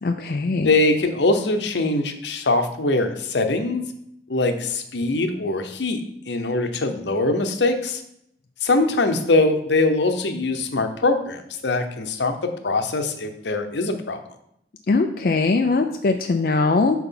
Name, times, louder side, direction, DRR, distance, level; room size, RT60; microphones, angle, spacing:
voice 1, 0.0-0.7 14.9-17.0, left 3 dB, 55° left, 4 dB, 0.4 m, -21 dB
voice 2, 0.6-3.8 4.3-6.0 6.3-8.0 8.6-14.2, left 2 dB, 80° left, 7 dB, 0.8 m, -22 dB
6.0 x 4.4 x 5.7 m, 0.74 s
head